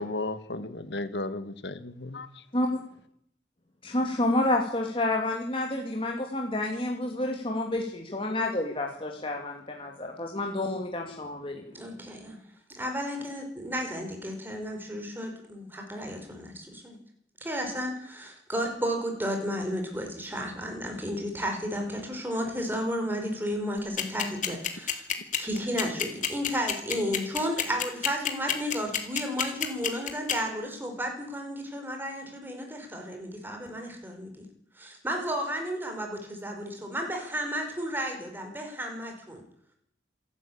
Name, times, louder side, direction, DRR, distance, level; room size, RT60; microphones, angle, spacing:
voice 1, 0.0-2.4, left 2 dB, 75° left, 12 dB, 1.6 m, -34 dB
voice 2, 3.8-11.6, left 2 dB, 30° left, 1 dB, 2.4 m, -29 dB
voice 3, 11.7-12.4 12.7-17.0 17.4-25.1 25.4-34.5 34.7-39.4, equal, 10° right, 3 dB, 5.1 m, -33 dB
sound 1, 24.0-30.3, left 9 dB, 45° left, 2.6 m, -27 dB
27.0 x 12.0 x 8.8 m, 0.69 s
head